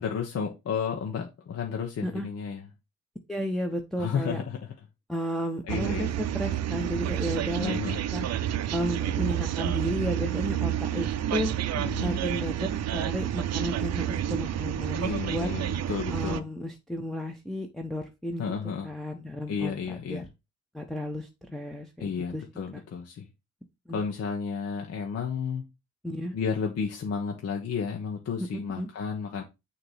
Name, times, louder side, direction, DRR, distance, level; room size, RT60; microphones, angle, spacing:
voice 1, 0.0-2.6 4.0-4.6 5.7-6.1 7.6-8.0 11.8-12.2 15.0-16.5 18.4-18.9 19.5-20.2 22.0-23.3 23.9-25.6 26.3-29.4, left 6 dB, 55° left, 1.2 m, -32 dB
voice 2, 3.3-4.4 5.1-7.8 8.1-8.3 8.7-11.5 12.0-15.5 16.1-18.5 18.8-20.2 20.7-22.4 22.7-22.8 23.9-24.0 26.0-26.3 28.8-28.9, equal, ahead, 0.9 m, -33 dB
sound 1, 5.7-16.4, right 11 dB, 60° right, 0.6 m, -29 dB
6.5 x 3.0 x 5.6 m
cardioid pair, 90°, 30 cm